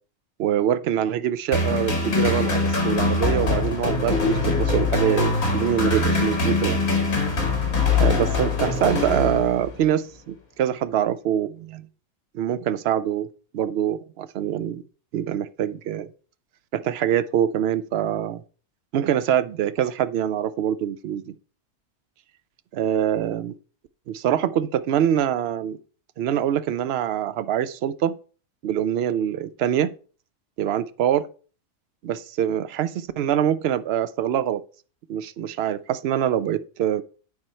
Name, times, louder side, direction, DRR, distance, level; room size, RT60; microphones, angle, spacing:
voice 1, 0.4-6.8 7.5-7.6 8.0-11.9 12.3-13.3 13.5-14.8 15.1-16.1 16.7-18.4 18.9-21.3 22.7-23.5 24.1-25.8 26.2-28.2 28.6-29.9 30.6-31.2 32.0-34.6 35.1-37.0, right 10 dB, 65° right, 0.7 m, -24 dB
sound 1, 1.5-9.8, left 3 dB, 80° left, 2.3 m, -23 dB
9.7 x 4.4 x 4.3 m
omnidirectional pair, 1.4 m